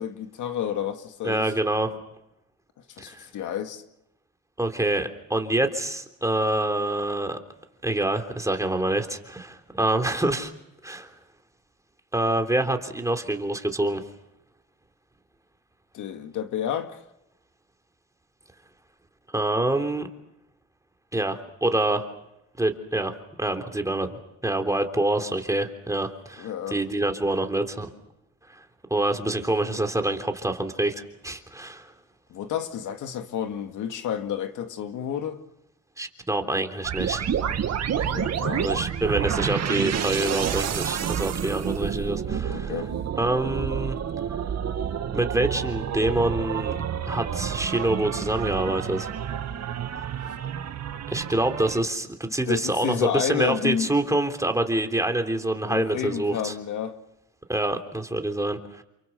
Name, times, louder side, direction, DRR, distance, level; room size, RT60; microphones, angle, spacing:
voice 1, 0.0-1.5 3.0-3.8 15.9-17.0 26.4-26.8 32.3-35.4 37.9-38.8 42.5-42.9 52.5-53.9 55.7-57.0, left 9 dB, 80° left, 2.1 m, -30 dB
voice 2, 1.2-1.9 3.0-3.2 4.6-7.4 7.8-10.5 10.8-11.1 12.1-14.0 19.3-20.1 21.1-22.1 22.6-27.9 28.5-28.6 28.9-31.9 36.0-37.3 38.6-42.7 43.2-44.0 45.1-46.8 47.1-49.1 51.1-56.5 57.5-58.8, right 1 dB, 10° right, 3.4 m, -26 dB
sound 1, 36.8-51.8, right 8 dB, 60° right, 2.1 m, -29 dB
29.5 x 23.5 x 6.8 m
cardioid pair, 90°, 30 cm